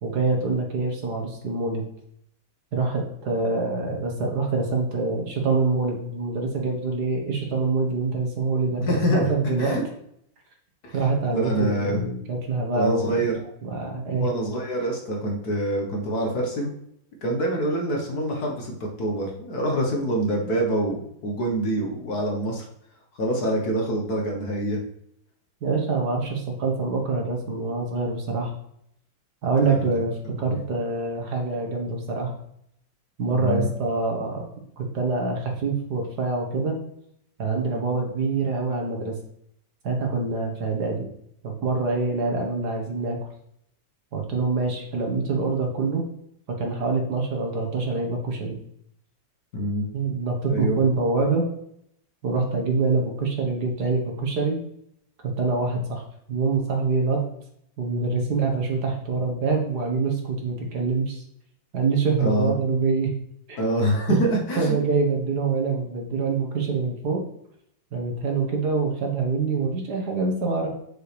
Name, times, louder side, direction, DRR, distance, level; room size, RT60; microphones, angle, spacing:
voice 1, 0.0-1.8 2.7-8.8 9.1-9.8 10.9-14.3 25.6-28.5 29.4-32.3 33.2-34.5 34.8-36.8 37.4-39.2 39.8-41.1 41.4-43.2 44.1-46.0 46.5-48.6 49.9-51.5 52.2-54.6 55.4-56.0 56.3-57.2 57.8-61.2 61.7-63.1 63.5-63.6 64.1-64.2 64.6-67.2 67.9-70.7, right 4 dB, 55° right, 1 dB, 1.9 m, -25 dB
voice 2, 8.9-9.3 9.6-9.8 10.8-11.0 11.3-12.0 12.7-13.3 14.2-16.7 17.2-22.6 23.2-24.8 29.6-29.9 30.4-30.6 33.3-33.6 49.5-49.9 50.5-50.8 62.2-62.5 63.6-64.8, right 1 dB, 55° left, 1 dB, 1.8 m, -25 dB
7.7 x 6.4 x 3.4 m, 0.73 s
omnidirectional pair, 2.1 m